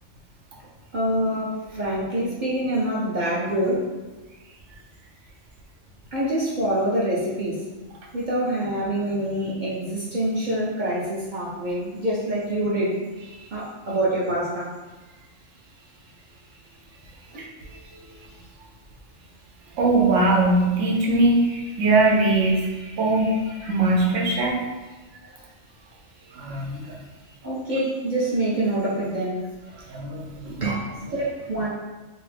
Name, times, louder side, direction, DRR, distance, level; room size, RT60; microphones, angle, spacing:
voice 1, 0.9-3.9 6.1-7.6 8.1-12.9 13.5-14.7 17.3-17.4 23.6-23.7 27.4-29.4 30.6-31.7, right 1 dB, 50° right, -6 dB, 0.6 m, -25 dB
voice 2, 19.7-24.6 26.3-27.0 29.9-30.7, right 2 dB, 90° right, -1 dB, 1.0 m, -21 dB
2.7 x 2.5 x 3.3 m, 1.2 s
omnidirectional pair, 1.3 m